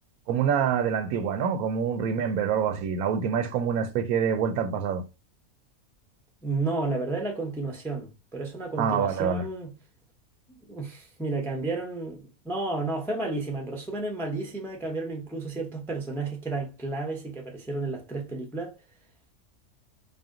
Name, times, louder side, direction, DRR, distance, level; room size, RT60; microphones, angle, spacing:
voice 1, 0.3-5.0 8.8-9.5, right 7 dB, 80° right, 1.0 m, -26 dB
voice 2, 6.4-9.7 10.5-18.8, right 3 dB, 5° left, 0.4 m, -32 dB
4.3 x 2.2 x 3.6 m
omnidirectional pair, 1.5 m